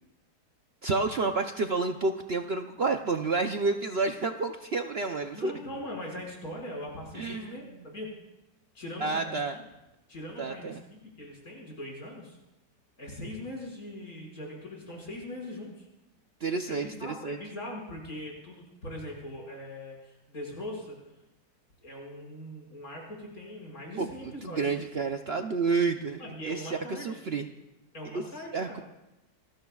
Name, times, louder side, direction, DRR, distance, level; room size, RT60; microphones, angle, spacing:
voice 1, 0.8-5.5 7.1-7.6 9.0-9.5 10.4-10.8 16.4-17.4 24.0-27.5 28.1-28.2 28.5-28.8, right 4 dB, 50° right, 5 dB, 0.8 m, -30 dB
voice 2, 5.3-8.2 8.7-9.6 10.1-12.4 13.0-15.9 16.7-21.0 21.8-24.6 26.2-27.2 27.9-28.8, left 1 dB, 65° left, -2 dB, 6.2 m, -41 dB
27.5 x 20.5 x 2.4 m, 0.98 s
omnidirectional pair, 1.7 m